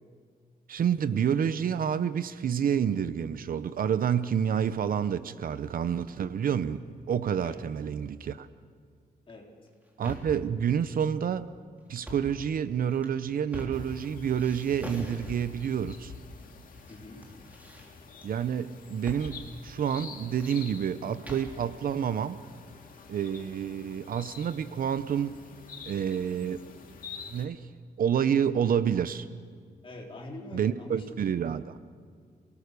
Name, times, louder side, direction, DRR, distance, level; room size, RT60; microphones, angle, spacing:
voice 1, 0.7-6.8 7.1-8.5 10.0-11.5 11.9-16.1 18.2-22.4 23.1-25.4 25.8-26.6 27.3-27.6 28.0-29.3 30.5-31.8, right 8 dB, 65° right, 14 dB, 0.8 m, -28 dB
sound 1, 9.7-10.5 11.9-12.4 12.9-14.1 14.4-15.7 16.4-17.0 17.2-18.3 19.1-19.3 19.5-19.6 20.1-21.6, equal, 10° right, 3.9 m, -42 dB
sound 2, 13.7-27.4, left 5 dB, 60° left, 2.2 m, -47 dB
voice 2, 16.9-17.3 29.8-31.2, left 2 dB, 35° left, -1 dB, 3.9 m, -44 dB
28.5 x 19.0 x 6.8 m, 2.1 s
wide cardioid pair, 150°, 16 cm